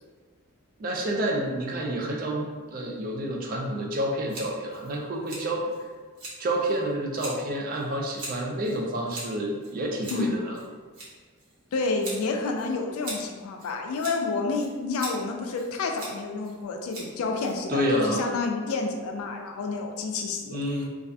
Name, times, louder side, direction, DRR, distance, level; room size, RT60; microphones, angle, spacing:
voice 1, 0.8-5.7 6.4-10.6 17.7-18.3 20.5-20.9, right 1 dB, 40° right, 0 dB, 0.3 m, -29 dB
Scissors, 4.3-18.0, right 1 dB, 85° right, 0.9 m, -43 dB
voice 2, 11.7-20.6, left 3 dB, 75° left, 3 dB, 0.3 m, -29 dB
2.3 x 2.1 x 2.6 m, 1.4 s
head